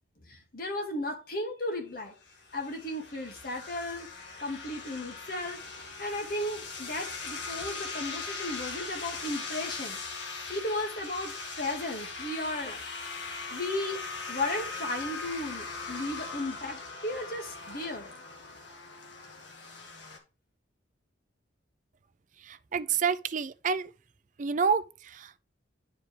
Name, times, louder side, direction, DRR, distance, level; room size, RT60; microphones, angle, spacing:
voice 1, 0.3-2.2 2.5-4.1 4.4-5.6 6.0-10.0 10.5-12.8 13.5-14.0 14.3-18.2, left 1 dB, 50° left, 2.1 m, -35 dB
sound 1, 2.3-20.2, left 4 dB, 65° left, 1.7 m, -40 dB
voice 2, 22.5-23.9 24.4-24.8 25.1-25.4, right 6 dB, 40° right, 0.4 m, -28 dB
9.9 x 4.9 x 3.3 m
head